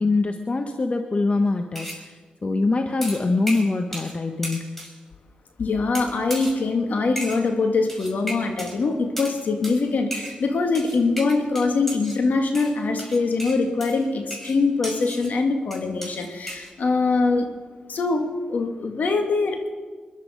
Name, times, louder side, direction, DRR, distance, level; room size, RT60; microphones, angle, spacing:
voice 1, 0.0-4.8, left 3 dB, 40° left, 6 dB, 1.2 m, -24 dB
sound 1, 1.8-2.1 3.0-4.2 4.4-5.0 5.9-6.6 7.2-7.4 7.9-8.8 9.2-9.4 9.6-9.8 10.1-10.4 10.7-12.2 12.5-15.3 15.7-16.7, equal, 5° left, 5.3 m, -35 dB
voice 2, 5.6-17.5 17.9-19.7, left 3 dB, 65° left, 4 dB, 2.3 m, -23 dB
22.0 x 11.0 x 5.2 m, 1.5 s
supercardioid pair, 40°, 3 cm